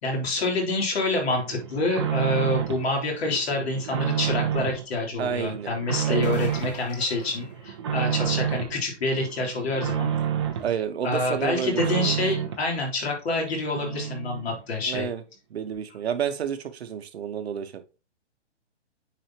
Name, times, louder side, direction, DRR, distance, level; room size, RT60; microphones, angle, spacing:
voice 1, 0.0-10.1 11.0-15.1, left 2 dB, 60° left, 3.2 m, -27 dB
sound 1, 1.3-2.9 3.2-4.8 5.2-6.8 7.2-8.8 9.1-10.7 11.1-12.7 13.1-13.2 13.5-13.6 13.7-14.6 14.9-15.0, right 9 dB, 25° right, 0.6 m, -29 dB
voice 2, 5.2-5.7 6.0-6.3 10.6-12.2 14.9-15.2 15.5-17.7, right 8 dB, 60° right, 1.0 m, -30 dB
sound 2, 6.1-8.3 13.8-13.9 15.7-15.8, left 5 dB, 35° left, 1.4 m, -44 dB
9.2 x 4.2 x 2.9 m
hypercardioid pair, 165°, 35 cm